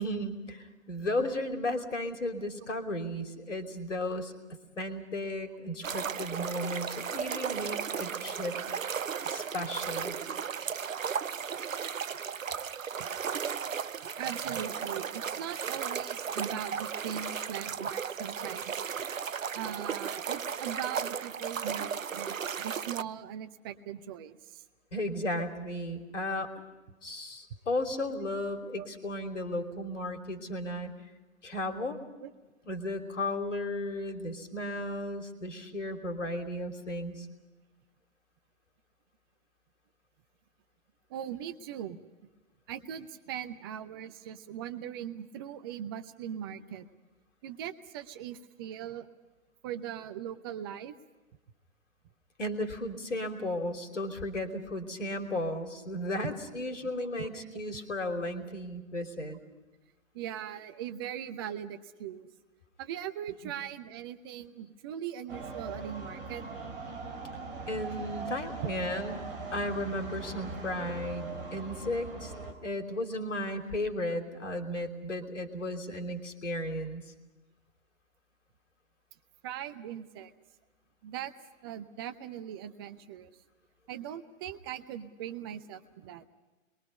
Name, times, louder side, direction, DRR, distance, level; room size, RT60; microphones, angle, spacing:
voice 1, 0.0-4.3 4.8-8.6 9.2-10.2 24.9-26.5 27.0-30.9 31.4-32.0 32.7-37.3 52.4-59.4 67.7-72.3 72.6-77.1, left 1 dB, 60° left, 5 dB, 3.3 m, -34 dB
sound 1, 5.8-23.0, right 7 dB, 70° right, 0.7 m, -35 dB
voice 2, 14.2-18.8 19.5-24.6 28.8-28.9 32.2-32.3 41.1-42.0 42.7-46.8 47.4-49.1 49.6-50.9 56.8-57.5 60.1-62.3 62.8-66.4 68.6-68.7 79.4-80.3 81.0-81.3 81.6-83.3 83.9-86.2, right 10 dB, 20° right, 11 dB, 0.7 m, -40 dB
sound 2, 65.3-72.5, right 3 dB, 40° right, 4.1 m, -40 dB
27.0 x 22.5 x 5.5 m, 1.1 s
figure-of-eight pair, 125°, 41 cm